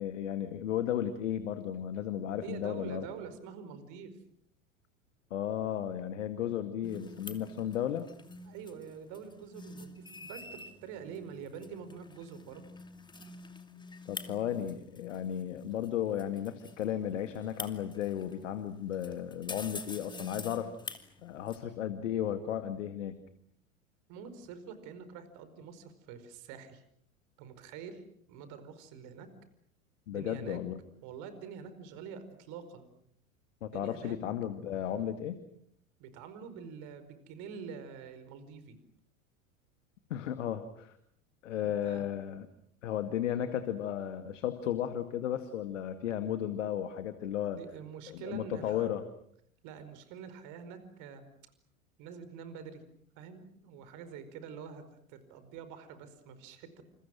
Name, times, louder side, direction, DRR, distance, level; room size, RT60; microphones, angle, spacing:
voice 1, 0.0-3.1 5.3-8.1 14.1-20.7 21.2-23.2 30.1-30.8 33.6-35.4 40.1-40.9 41.4-42.5 42.8-47.6 48.1-49.0, left 10 dB, 65° left, 10 dB, 2.2 m, -34 dB
voice 2, 2.4-4.1 8.4-12.7 24.1-26.8 27.4-28.0 28.3-29.3 30.1-30.6 31.0-32.9 33.7-34.2 36.0-38.8 41.6-42.1 47.5-48.9 49.6-51.2 52.0-52.8 53.2-54.8 55.1-56.8, right 6 dB, 45° right, 11 dB, 5.0 m, -46 dB
sound 1, 6.8-21.6, left 3 dB, 10° left, 2.7 m, -47 dB
29.5 x 28.5 x 6.3 m, 0.69 s
figure-of-eight pair, 80°, 40 cm